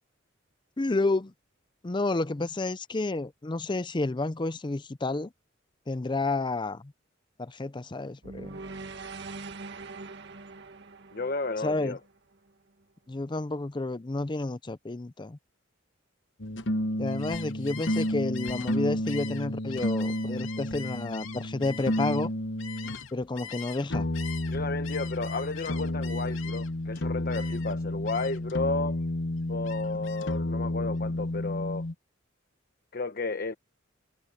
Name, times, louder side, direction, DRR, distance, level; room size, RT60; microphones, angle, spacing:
voice 1, 0.8-1.3 1.8-5.3 5.9-6.9 7.4-8.6 11.6-12.0 13.1-15.4 17.0-22.3 23.1-24.1 29.9-30.0, left 2 dB, 25° left, 0.5 m, -30 dB
sound 1, 8.2-12.5, right 3 dB, 60° right, 1.9 m, -43 dB
voice 2, 11.1-12.0 24.5-29.0 29.5-31.9 32.9-33.5, left 3 dB, 45° left, 1.0 m, -33 dB
sound 2, 16.4-23.1 23.9-31.9, left 1 dB, 60° left, 1.3 m, -31 dB
Gull seagull, 17.1-23.9 24.1-26.9 27.3-27.8 28.1-28.5 28.9-30.4, left 9 dB, 80° left, 2.8 m, -44 dB
head